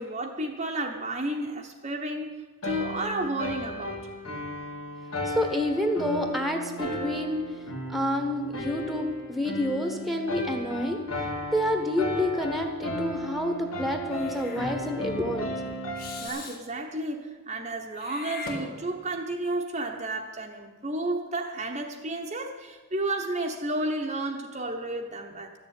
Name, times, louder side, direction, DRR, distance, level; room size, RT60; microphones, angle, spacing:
voice 1, 0.0-4.1 16.2-25.5, right 1 dB, 30° right, 2 dB, 0.9 m, -32 dB
sound 1, 2.6-16.3, equal, 80° left, 2.3 m, -35 dB
voice 2, 5.2-7.4 7.9-15.5, left 1 dB, ahead, 4 dB, 1.2 m, -28 dB
Meow / Hiss, 14.1-14.7 16.0-16.6 17.9-19.2, left 3 dB, 40° left, 2.1 m, -40 dB
13.5 x 7.1 x 9.8 m, 1.4 s
head